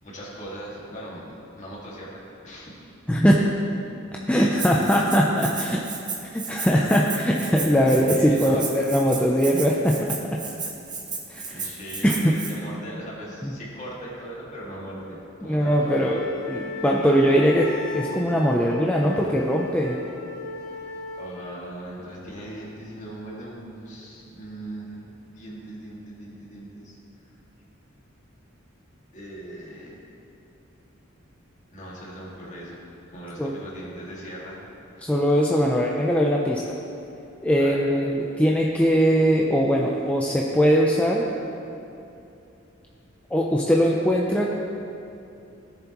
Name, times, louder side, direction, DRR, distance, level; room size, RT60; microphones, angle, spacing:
voice 1, 0.0-2.7 7.9-8.7 11.5-16.1 20.7-20.8 21.2-25.0 25.3-26.9 29.1-30.0 31.7-32.8 33.1-34.6 35.0-35.1 37.6-37.8, right 1 dB, 35° left, -5 dB, 2.1 m, -39 dB
voice 2, 3.1-3.4 4.3-5.8 6.3-10.0 11.3-11.7 12.0-12.4 13.4-13.5 15.4-20.0 33.4-33.5 35.0-36.8 37.4-41.3 43.3-44.5, equal, 5° left, -2 dB, 0.5 m, -21 dB
Rattle (instrument), 4.6-12.5, right 5 dB, 20° right, 0.9 m, -34 dB
Wind instrument woodwind instrument, 15.6-21.4, left 3 dB, 60° left, 1.2 m, -37 dB
16.5 x 7.0 x 3.0 m, 2.7 s
head